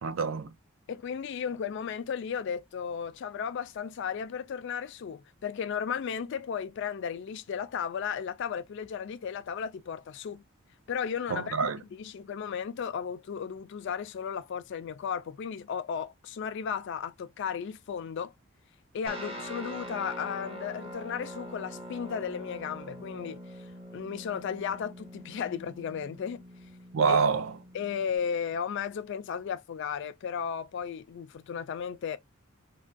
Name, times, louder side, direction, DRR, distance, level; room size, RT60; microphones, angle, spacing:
voice 1, 0.0-0.5 11.3-11.8 26.9-27.5, right 5 dB, 70° right, 0.5 m, -26 dB
voice 2, 0.9-10.4 10.9-18.3 18.9-23.4 23.9-26.4 27.1-27.2 27.7-32.2, left 7 dB, 60° left, 0.3 m, -35 dB
Guitar, 19.1-28.2, equal, 25° right, 0.6 m, -43 dB
3.4 x 2.2 x 2.5 m
head